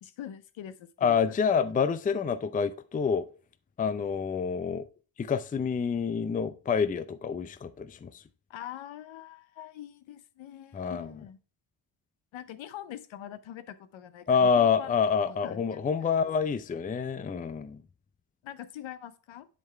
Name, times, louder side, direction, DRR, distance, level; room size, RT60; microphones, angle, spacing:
voice 1, 0.0-1.4 8.5-11.4 12.3-14.9 15.3-16.3 18.4-19.5, left 11 dB, 70° left, 0.8 m, -44 dB
voice 2, 1.0-3.3 3.8-4.9 5.2-8.2 10.7-11.1 14.3-17.8, left 6 dB, 20° left, 0.4 m, -27 dB
11.0 x 3.7 x 3.3 m
supercardioid pair, 50°, 49 cm